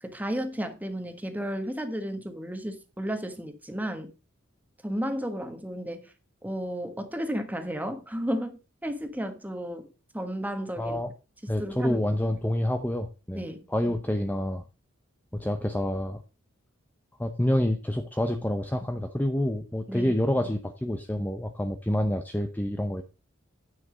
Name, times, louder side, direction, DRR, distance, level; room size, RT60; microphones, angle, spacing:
voice 1, 0.0-4.1 4.8-6.1 6.4-9.9 10.1-11.0 11.6-12.0 13.3-13.6 19.9-20.2, equal, 10° right, 1.3 m, -33 dB
voice 2, 10.8-11.1 11.5-14.6 15.3-16.2 17.2-23.0, left 1 dB, 10° left, 0.7 m, -28 dB
9.6 x 5.8 x 5.0 m
head